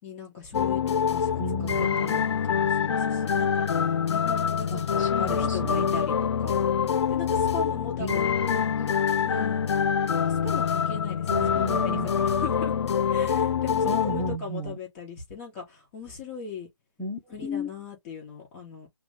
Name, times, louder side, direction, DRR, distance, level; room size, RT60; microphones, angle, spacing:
voice 1, 0.0-1.3 1.6-6.7 7.1-8.4 9.2-9.8 10.2-12.7 13.1-16.7 17.3-18.9, left 5 dB, 20° left, 3.2 m, -39 dB
sound 1, 0.5-14.4, left 7 dB, 60° left, 0.4 m, -25 dB
voice 2, 1.4-2.3 4.7-6.0 8.0-9.2 11.3-12.1 13.9-14.8 17.0-17.7, left 1 dB, 5° left, 0.5 m, -34 dB
5.8 x 2.2 x 3.5 m
hypercardioid pair, 160°, 16 cm